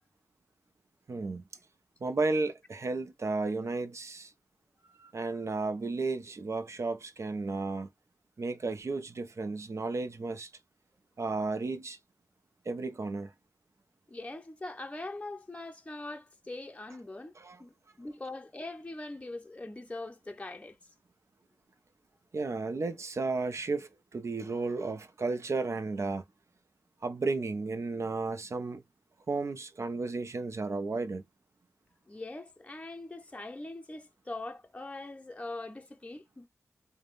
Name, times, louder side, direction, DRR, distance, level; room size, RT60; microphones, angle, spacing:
voice 1, 1.1-1.5 2.0-4.3 5.0-7.9 8.4-10.5 11.2-12.0 12.6-13.3 17.4-17.6 22.3-26.2 27.0-28.8 29.3-31.2, right 3 dB, 55° right, 0.7 m, -33 dB
voice 2, 14.1-20.8 32.1-36.5, left 2 dB, 20° left, 0.6 m, -42 dB
3.4 x 2.2 x 2.5 m
cardioid pair, 60°, 6 cm